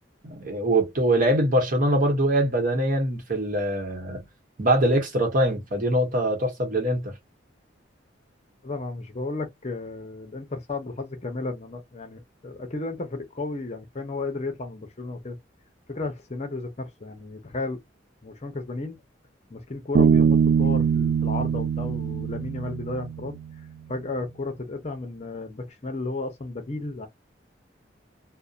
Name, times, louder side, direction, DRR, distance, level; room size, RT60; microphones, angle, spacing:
voice 1, 0.2-4.2 4.6-7.1, right 1 dB, 45° right, 0.9 m, -23 dB
voice 2, 8.6-15.4 15.9-17.8 18.2-19.0 19.5-23.4 23.9-27.1, left 2 dB, 35° left, 0.6 m, -33 dB
Bass guitar, 20.0-23.5, right 7 dB, 85° right, 0.4 m, -22 dB
2.7 x 2.1 x 2.3 m
head